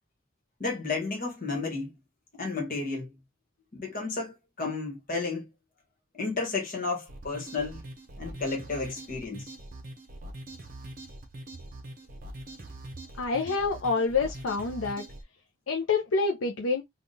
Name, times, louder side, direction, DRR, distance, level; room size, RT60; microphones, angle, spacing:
voice 1, 0.6-1.9 2.3-3.1 3.7-5.5 6.1-7.8 8.2-9.5, left 3 dB, 45° left, 1.3 m, -32 dB
sound 1, 7.1-15.2, right 1 dB, 45° right, 0.7 m, -43 dB
voice 2, 13.2-15.0 15.7-16.8, left 4 dB, 75° left, 0.5 m, -27 dB
3.5 x 2.4 x 2.7 m
head